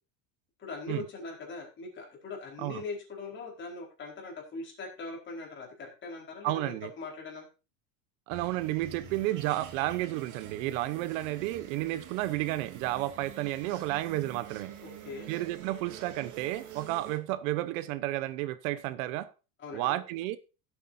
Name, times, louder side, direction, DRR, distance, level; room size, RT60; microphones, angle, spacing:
voice 1, 0.6-7.5 14.8-15.3 19.6-20.0, left 3 dB, 25° left, 4.5 m, -41 dB
voice 2, 6.4-6.9 8.3-14.7 15.3-19.3 19.7-20.4, right 16 dB, 70° right, 1.0 m, -32 dB
sound 1, 8.3-17.2, right 9 dB, 45° right, 2.3 m, -47 dB
16.0 x 8.3 x 2.7 m
cardioid pair, 155°, 41 cm